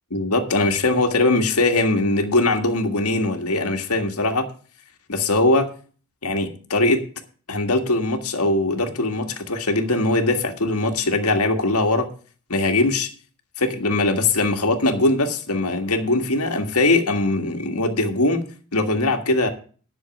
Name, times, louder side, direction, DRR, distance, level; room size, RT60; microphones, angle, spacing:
voice 1, 0.1-4.5 5.1-5.7 6.2-7.0 7.5-12.1 12.5-13.1 13.6-18.4 18.7-19.5, left 2 dB, 80° left, 6 dB, 1.7 m, -21 dB
11.0 x 6.2 x 7.1 m, 0.41 s
head